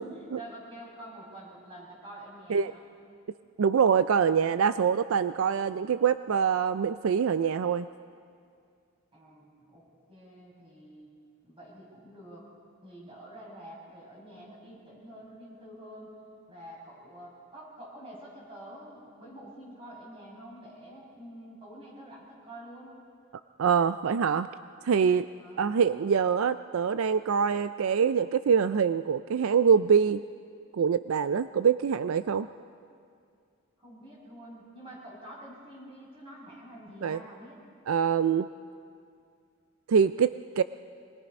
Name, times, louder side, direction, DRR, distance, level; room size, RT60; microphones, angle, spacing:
voice 1, 0.0-2.9 9.1-11.1 11.4-12.5 12.8-16.2 16.5-22.9 25.4-25.6 33.8-37.6, right 1 dB, 25° right, -3 dB, 6.1 m, -47 dB
voice 2, 3.6-7.9 23.6-24.5 24.8-25.3 25.6-30.2 30.7-32.5 37.0-37.2 37.9-38.5 39.9-40.6, right 6 dB, 75° right, 13 dB, 0.4 m, -24 dB
24.5 x 20.0 x 5.4 m, 2.3 s
head